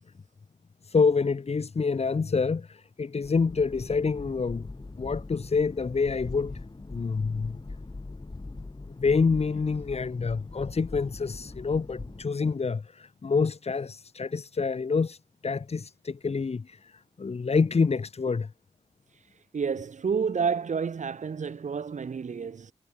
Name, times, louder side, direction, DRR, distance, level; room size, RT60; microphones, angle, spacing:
voice 1, 0.8-4.7 5.0-6.6 6.9-7.6 8.9-18.5, left 4 dB, 55° left, 2.1 m, -27 dB
sound 1, 3.2-12.2, left 3 dB, 35° left, 7.4 m, -42 dB
voice 2, 19.5-22.7, right 6 dB, 70° right, 2.1 m, -29 dB
wide cardioid pair, 75°, 13 cm